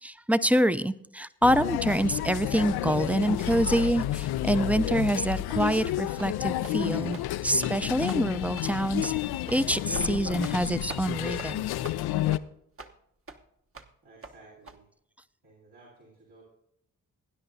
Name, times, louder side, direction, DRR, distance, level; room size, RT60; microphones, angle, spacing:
voice 1, 0.0-9.1 9.5-11.6, right 1 dB, 5° right, 14 dB, 0.5 m, -26 dB
sound 1, 1.4-12.4, left 14 dB, 80° left, 0.5 m, -30 dB
sound 2, 5.7-5.8 6.2-6.3 6.6-6.8 7.1-7.3 7.6-7.8 8.1-8.2 8.6-8.7 9.0-9.2 9.5-9.6 9.9-10.1 10.4-10.6 10.9-11.0 11.4-11.5 11.8-12.0 12.3-12.4 12.8-12.9 13.3-13.4 13.7-13.9 14.2-14.3 14.7-14.8, right 3 dB, 35° right, 1.0 m, -43 dB
voice 2, 14.0-14.9 15.4-16.4, right 3 dB, 80° right, -6 dB, 3.6 m, -55 dB
19.0 x 9.9 x 2.7 m, 0.76 s
supercardioid pair, 55°, 37 cm